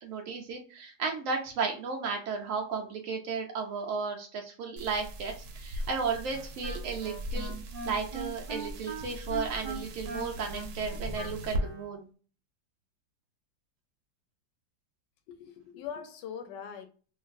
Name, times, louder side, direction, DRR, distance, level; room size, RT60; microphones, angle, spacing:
voice 1, 0.0-7.5 7.8-12.1, right 5 dB, 85° right, 0.7 m, -34 dB
sound 1, 4.8-11.6, equal, 70° right, 1.0 m, -38 dB
Wind instrument woodwind instrument, 6.3-11.9, right 2 dB, 40° right, 0.8 m, -41 dB
voice 2, 15.3-16.9, left 8 dB, 80° left, 1.2 m, -41 dB
3.0 x 2.5 x 2.4 m
omnidirectional pair, 1.9 m